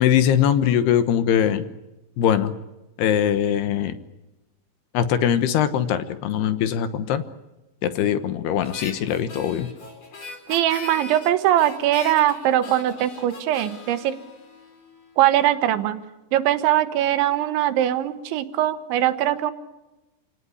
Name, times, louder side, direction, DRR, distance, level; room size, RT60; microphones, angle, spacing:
voice 1, 0.0-1.7 2.2-2.5 3.0-4.0 4.9-7.2 7.8-9.7, left 9 dB, 70° left, 11 dB, 2.8 m, -21 dB
Harmonica, 8.6-15.1, left 3 dB, 35° left, 4.7 m, -40 dB
voice 2, 10.5-14.2 15.2-16.0 16.3-19.5, right 12 dB, 75° right, 11 dB, 3.4 m, -21 dB
28.5 x 18.5 x 9.6 m, 1.0 s
omnidirectional pair, 5.5 m